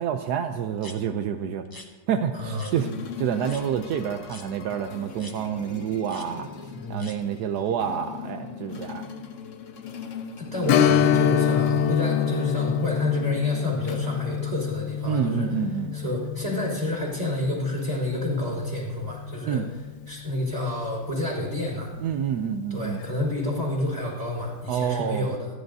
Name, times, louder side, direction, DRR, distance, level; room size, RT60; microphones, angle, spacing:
voice 1, 0.0-1.6 2.1-2.9 3.2-6.5 6.9-9.1 15.0-16.0 19.4-19.7 22.0-23.1 24.7-25.3, right 8 dB, 75° right, 7 dB, 0.9 m, -28 dB
sound 1, 0.8-1.0 1.6-1.9 2.6-2.8 3.4-3.6 4.3-4.5 5.2-5.4 6.0-6.3 7.0-7.2, left 2 dB, 20° left, 0.5 m, -44 dB
voice 2, 2.3-2.8 6.6-7.1 10.4-15.5 15.9-19.6 20.1-21.9 22.7-25.5, left 1 dB, 20° right, -3 dB, 4.5 m, -29 dB
sound 2, 2.7-15.0, left 6 dB, 50° left, 0.9 m, -40 dB
Strum, 10.7-19.9 20.2-20.3 22.8-23.0 23.5-23.6, left 9 dB, 85° left, 1.5 m, -26 dB
27.0 x 11.0 x 2.7 m, 1.3 s
omnidirectional pair, 2.3 m